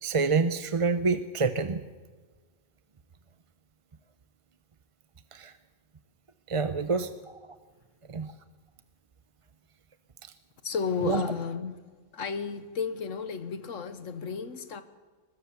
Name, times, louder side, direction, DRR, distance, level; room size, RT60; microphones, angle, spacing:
voice 1, 0.0-1.8 5.3-5.5 6.5-7.4 8.1-8.3 10.2-10.3 11.0-11.2, right 4 dB, 30° right, 0.7 m, -27 dB
voice 2, 10.6-11.8 12.1-14.8, left 5 dB, 85° left, 1.6 m, -33 dB
22.5 x 20.5 x 7.0 m
omnidirectional pair, 1.3 m